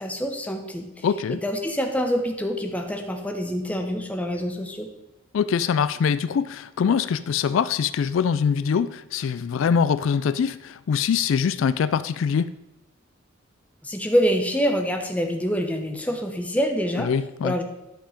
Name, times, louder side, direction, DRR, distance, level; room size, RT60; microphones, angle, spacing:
voice 1, 0.0-4.9 13.8-17.1 17.4-17.6, equal, 5° left, 3 dB, 1.0 m, -26 dB
voice 2, 1.0-1.4 5.3-12.5 17.0-17.5, left 6 dB, 70° left, 14 dB, 0.3 m, -23 dB
11.5 x 5.5 x 5.1 m, 0.95 s
head